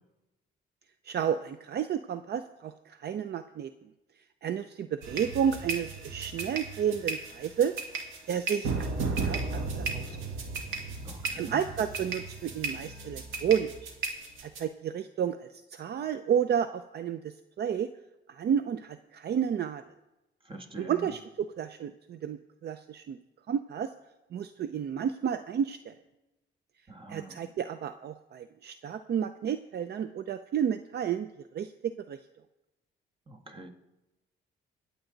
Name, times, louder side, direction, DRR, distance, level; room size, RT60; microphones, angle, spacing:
voice 1, 1.0-3.7 4.4-8.9 9.2-10.2 11.4-13.9 14.4-17.9 18.3-19.8 20.8-23.2 23.5-23.9 24.3-25.9 27.1-32.2, right 8 dB, 55° right, 11 dB, 0.6 m, -31 dB
sound 1, 5.0-14.6, right 3 dB, 90° right, 2.0 m, -35 dB
voice 2, 11.0-11.6 20.4-21.1 26.9-27.5 33.3-33.7, right 2 dB, 25° right, 5 dB, 1.7 m, -44 dB
23.0 x 8.2 x 3.9 m, 0.99 s
cardioid pair, 90°, 20 cm